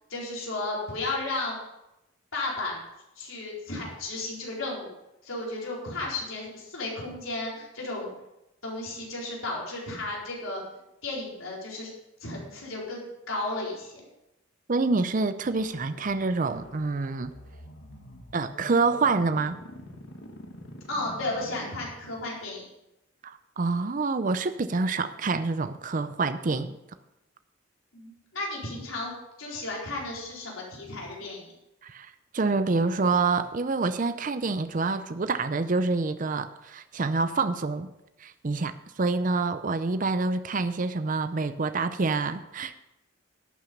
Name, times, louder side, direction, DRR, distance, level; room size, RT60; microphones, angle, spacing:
voice 1, 0.1-1.6 2.3-2.8 3.2-4.9 5.2-8.1 8.6-10.6 11.0-11.9 12.2-14.0 20.9-22.6 27.9-29.1 29.4-31.5, left 2 dB, 90° left, -3 dB, 4.3 m, -34 dB
voice 2, 14.7-17.3 18.3-19.6 23.2-26.7 31.8-32.1 32.3-37.9 38.2-42.7, right 3 dB, 40° right, 11 dB, 0.5 m, -27 dB
sound 1, 15.4-22.4, left 1 dB, 70° left, 1.5 m, -46 dB
11.5 x 9.1 x 5.3 m, 0.91 s
head